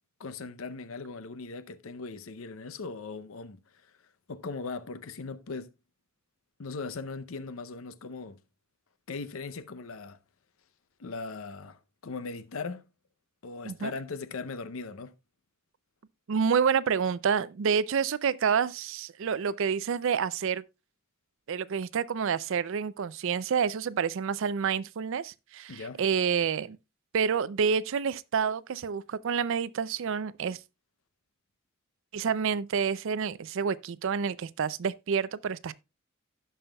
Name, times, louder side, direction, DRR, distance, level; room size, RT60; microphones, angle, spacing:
voice 1, 0.2-3.6 4.3-5.7 6.6-8.4 9.1-10.2 11.0-12.8 13.4-15.1 25.7-26.0, left 4 dB, 75° left, 0.6 m, -39 dB
voice 2, 16.3-20.6 21.5-26.8 27.1-30.6 32.1-35.7, right 6 dB, 65° right, 0.4 m, -28 dB
16.5 x 5.6 x 2.3 m
head